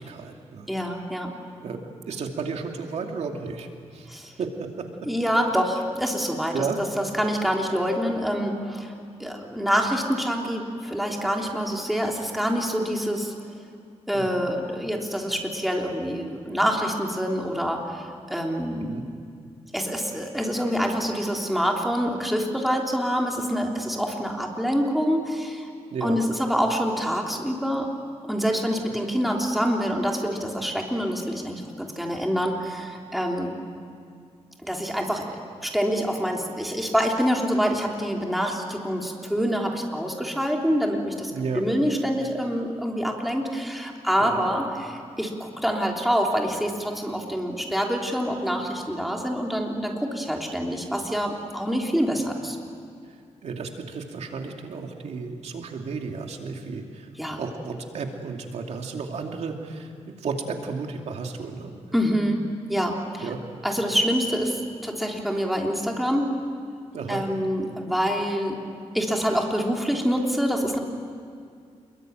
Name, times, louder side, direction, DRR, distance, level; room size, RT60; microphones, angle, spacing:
voice 1, 0.0-0.7 1.6-1.8 2.1-4.9 6.5-6.8 14.1-14.5 18.8-19.0 25.9-26.2 41.3-41.6 44.2-44.4 53.1-57.1 57.4-61.7 63.2-63.4 66.9-67.2, right 5 dB, 75° right, 3 dB, 2.6 m, -33 dB
voice 2, 0.7-1.3 4.1-4.3 5.0-6.6 7.2-8.9 9.2-13.3 14.1-19.0 19.7-25.7 26.0-27.9 28.2-33.6 34.6-52.6 57.2-57.4 61.9-63.3 63.6-66.3 67.1-68.6 68.9-70.8, equal, ahead, 0 dB, 3.4 m, -26 dB
28.0 x 22.5 x 9.2 m, 2.3 s
wide cardioid pair, 120°, 11 cm